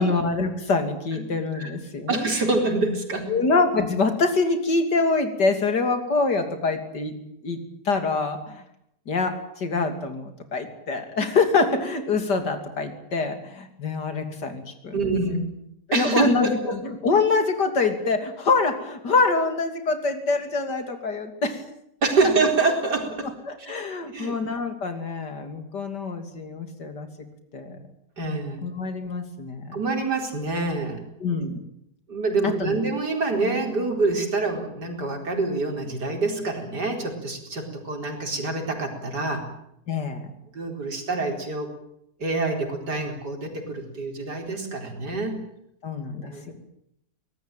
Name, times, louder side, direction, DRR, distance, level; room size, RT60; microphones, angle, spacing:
voice 1, 0.0-2.3 3.3-7.1 7.4-7.6 7.8-8.6 9.1-15.0 15.9-21.6 23.5-27.1 27.5-27.8 28.6-29.7 31.2-31.6 32.6-32.8 39.9-40.3 45.8-46.5, left 3 dB, 80° left, 7 dB, 3.5 m, -25 dB
voice 2, 2.1-3.3 14.9-15.4 15.9-16.7 22.0-23.7 24.1-24.3 28.2-28.6 29.7-31.0 32.1-39.5 40.5-41.7 42.2-45.4 46.2-46.5, right 3 dB, 75° right, 3 dB, 4.9 m, -26 dB
23.5 x 19.0 x 9.1 m, 0.77 s
omnidirectional pair, 1.8 m